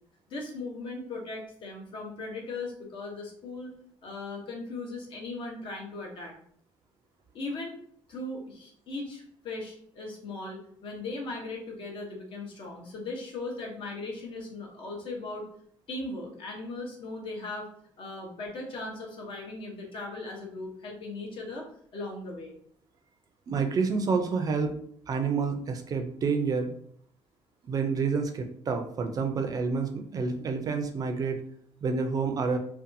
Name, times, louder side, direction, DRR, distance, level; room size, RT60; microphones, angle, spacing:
voice 1, 0.3-3.7 4.0-6.3 7.3-7.8 8.1-15.5 15.9-17.7 18.0-22.6, left 2 dB, 60° left, 0 dB, 0.8 m, -38 dB
voice 2, 23.5-24.7 25.1-26.7 27.6-31.4 31.8-32.6, right 5 dB, 40° right, 6 dB, 0.4 m, -28 dB
2.6 x 2.2 x 2.6 m, 0.63 s
cardioid pair, 125°, 10 cm